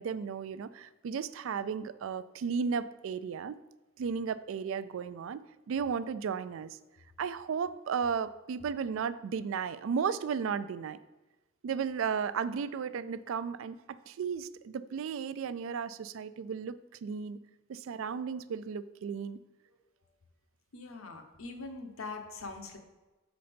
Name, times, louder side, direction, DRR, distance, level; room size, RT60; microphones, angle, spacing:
voice 1, 0.0-3.6 4.0-6.8 7.2-11.0 11.6-17.4 17.7-19.4, right 6 dB, 70° right, 15 dB, 0.3 m, -34 dB
voice 2, 20.7-22.8, left 3 dB, 80° left, 5 dB, 0.9 m, -42 dB
6.7 x 4.0 x 5.1 m, 1.1 s
head